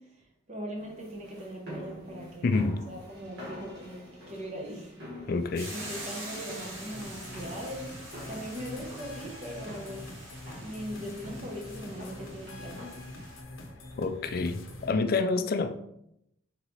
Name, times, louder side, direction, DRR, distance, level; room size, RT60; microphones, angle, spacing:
voice 1, 0.0-5.3 5.7-10.3 10.6-13.1, equal, 35° right, 0.8 m, -41 dB
sound 1, 0.8-14.7, equal, 55° right, 1.5 m, -48 dB
voice 2, 2.4-2.8 5.3-5.7 14.0-15.8, left 3 dB, 50° left, 0.4 m, -28 dB
Hiss / Boiling, 5.5-13.4, right 1 dB, 75° right, 1.6 m, -45 dB
sound 2, 6.9-14.9, left 2 dB, 85° left, 0.8 m, -45 dB
4.0 x 3.7 x 3.1 m
head